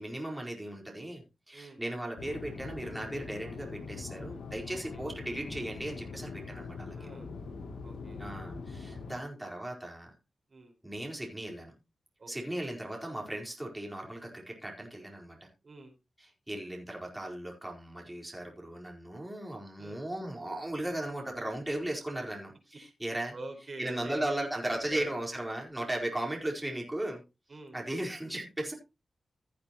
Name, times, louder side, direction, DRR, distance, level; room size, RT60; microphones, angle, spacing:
voice 1, 0.0-7.0 8.2-10.1 10.8-11.7 12.3-15.5 16.2-23.3 23.8-27.2 27.7-28.7, right 1 dB, 15° right, -1 dB, 4.4 m, -37 dB
sound 1, 2.2-9.1, left 4 dB, 90° left, 3.9 m, -42 dB
voice 2, 4.7-5.1 6.9-7.3 7.8-8.2 10.5-10.8 12.2-12.6 15.6-15.9 19.8-20.0 23.3-24.3 24.9-25.1 26.2-26.5 27.5-27.8, right 2 dB, 55° right, 3 dB, 5.1 m, -46 dB
15.5 x 8.5 x 3.1 m, 0.26 s
cardioid pair, 55°, 0 cm